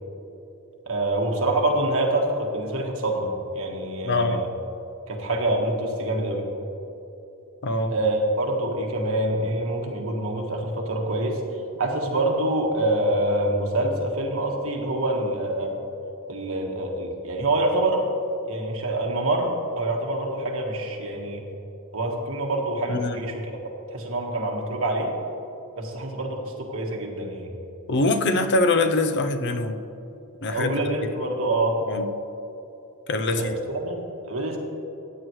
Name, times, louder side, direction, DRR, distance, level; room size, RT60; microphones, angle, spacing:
voice 1, 0.9-3.3 3.5-4.5 5.1-6.4 7.9-11.4 11.8-15.8 16.3-18.1 18.5-21.4 21.9-23.6 23.9-25.1 25.8-27.5 30.5-31.8 33.4-34.6, right 1 dB, 70° right, 1 dB, 1.5 m, -26 dB
voice 2, 4.1-4.4 7.6-7.9 22.9-23.2 27.9-29.8 30.4-30.7 31.9-32.1 33.1-33.5, left 2 dB, 55° left, 8 dB, 0.6 m, -23 dB
15.0 x 9.1 x 3.1 m, 2.9 s
head